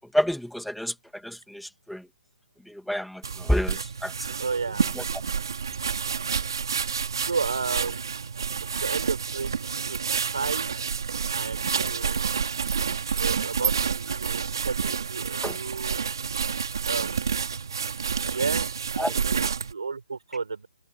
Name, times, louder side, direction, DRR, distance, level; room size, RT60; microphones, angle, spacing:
voice 1, 0.1-2.1 2.7-4.1 4.9-5.0 15.4-15.6 19.0-19.1, equal, ahead, 2.3 m, -29 dB
sound 1, 3.2-19.7, right 6 dB, 60° right, 3.2 m, -29 dB
voice 2, 4.4-4.9 7.2-8.4 8.8-10.1 10.3-10.7 11.3-12.2 12.6-12.7 13.1-16.0 16.9-17.4 18.2-20.7, right 4 dB, 85° right, 5.5 m, -33 dB
hypercardioid pair, 170°, 3 cm